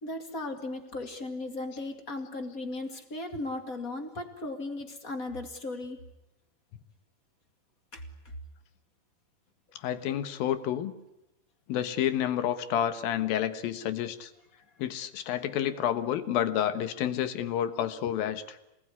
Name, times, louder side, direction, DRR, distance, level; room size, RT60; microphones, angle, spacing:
voice 1, 0.0-6.0 7.9-8.0, left 2 dB, 30° left, 5 dB, 2.0 m, -36 dB
voice 2, 9.8-10.9 11.7-14.3 14.8-18.6, left 10 dB, 70° left, 11 dB, 3.0 m, -29 dB
26.5 x 19.5 x 9.7 m, 0.90 s
omnidirectional pair, 4.4 m